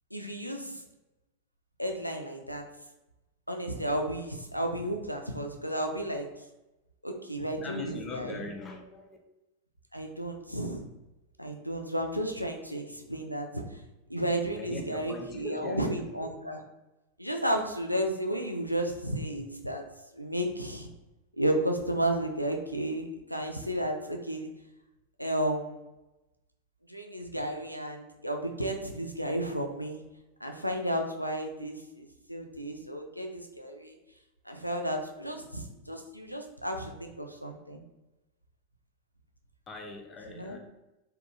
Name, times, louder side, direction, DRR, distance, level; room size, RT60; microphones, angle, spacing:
voice 1, 0.1-0.8 1.8-2.6 3.5-6.3 7.0-8.3 9.9-10.8 11.4-13.6 14.1-16.6 17.2-19.8 20.2-20.9 21.4-23.0 23.3-24.5 25.2-25.8 26.9-30.0 30.4-34.0 34.5-37.8 40.4-40.6, right 1 dB, 90° left, 3 dB, 0.3 m, -33 dB
voice 2, 7.6-9.2 14.6-16.2 39.7-40.6, left 3 dB, 20° left, 2 dB, 0.6 m, -41 dB
3.5 x 2.3 x 2.5 m, 0.99 s
figure-of-eight pair, 90°, 0 cm